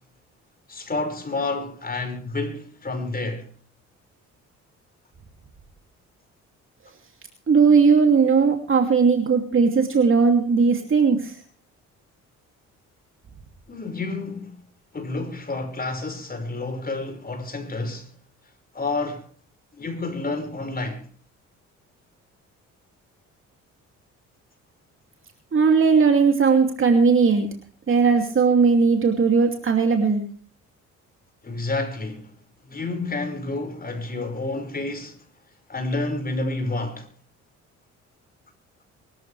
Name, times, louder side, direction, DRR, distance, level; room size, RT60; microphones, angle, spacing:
voice 1, 0.7-3.5 13.7-14.6 14.9-18.1 18.7-19.3 19.8-21.1 31.4-32.3 32.7-35.2 35.7-37.1, left 2 dB, 30° left, 5.4 m, -29 dB
voice 2, 7.5-11.4 25.5-27.5 27.9-30.2, right 5 dB, 45° right, 2.8 m, -18 dB
23.5 x 13.5 x 3.4 m
cardioid pair, 90°, 30 cm